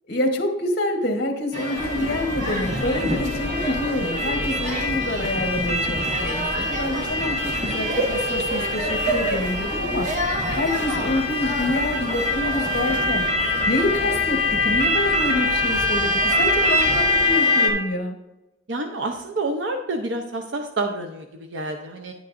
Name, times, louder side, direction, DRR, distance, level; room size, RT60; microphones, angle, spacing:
voice 1, 0.1-10.1 10.5-13.3 13.7-18.2, left 1 dB, 55° left, 4 dB, 1.0 m, -27 dB
sound 1, 1.5-17.7, left 1 dB, 45° right, 1.6 m, -24 dB
sound 2, 1.8-17.4, left 1 dB, 35° left, 1.0 m, -35 dB
voice 2, 18.7-22.1, right 2 dB, 70° right, 4 dB, 0.6 m, -28 dB
10.0 x 9.3 x 2.5 m, 0.96 s
head